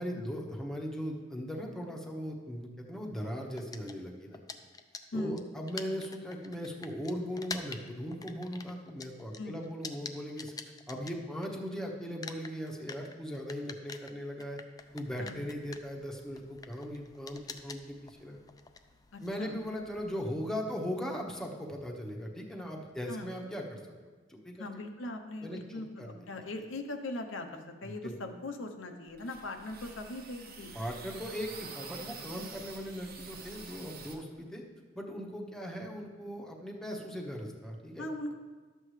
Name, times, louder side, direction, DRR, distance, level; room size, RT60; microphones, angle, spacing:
voice 1, 0.0-4.4 5.1-10.5 10.9-14.6 14.9-18.4 19.2-23.8 24.3-24.6 25.4-26.1 28.0-28.1 30.7-34.6 34.9-38.1, equal, 5° left, 0 dB, 0.9 m, -38 dB
sound 1, 3.6-11.7 12.0-20.3, left 4 dB, 20° left, 0.4 m, -46 dB
voice 2, 19.1-19.5 23.1-23.3 24.6-30.7 38.0-38.3, left 2 dB, 85° left, 4 dB, 0.8 m, -40 dB
sound 2, 29.1-34.2, right 4 dB, 50° right, 1.0 m, -47 dB
12.0 x 7.7 x 3.2 m, 1.4 s
head